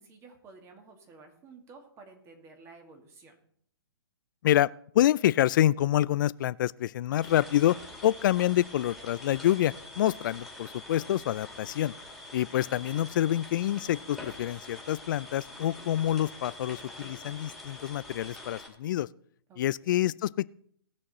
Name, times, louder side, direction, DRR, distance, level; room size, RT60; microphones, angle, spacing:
voice 1, 0.0-3.4 19.5-20.1, right 4 dB, 20° right, 2.3 m, -53 dB
voice 2, 4.9-7.8 8.0-11.9 12.3-19.1 19.6-20.5, left 12 dB, 50° left, 0.4 m, -27 dB
sound 1, 7.2-18.7, left 2 dB, ahead, 2.5 m, -45 dB
18.5 x 6.5 x 4.2 m
hypercardioid pair, 140°, 13 cm